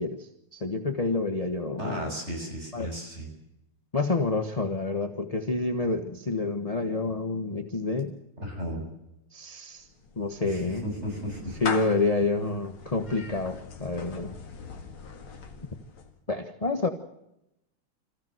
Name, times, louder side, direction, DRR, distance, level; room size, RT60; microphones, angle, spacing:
voice 1, 0.0-2.1 2.7-2.9 3.9-8.1 9.3-9.9 10.2-10.8 11.6-14.3 16.3-16.9, left 3 dB, 25° left, 7 dB, 1.0 m, -28 dB
voice 2, 1.8-3.3 8.4-8.9 10.4-11.6, equal, 30° right, 1 dB, 7.5 m, -34 dB
Clapping / Meow, 9.7-16.2, left 4 dB, 70° left, 2.9 m, -40 dB
26.5 x 15.5 x 7.9 m, 0.85 s
omnidirectional pair, 2.4 m